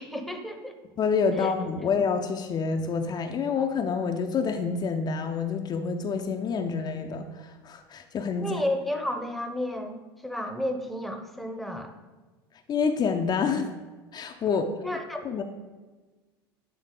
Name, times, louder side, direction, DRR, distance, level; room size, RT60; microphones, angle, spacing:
voice 1, 0.0-0.8 1.3-1.5 8.4-12.0 14.8-15.2, left 1 dB, ahead, 4 dB, 0.8 m, -32 dB
voice 2, 1.0-8.6 12.7-13.7 14.1-14.6 15.2-15.4, left 5 dB, 35° left, 5 dB, 0.5 m, -27 dB
8.1 x 3.6 x 3.7 m, 1.3 s
hypercardioid pair, 85°, 13 cm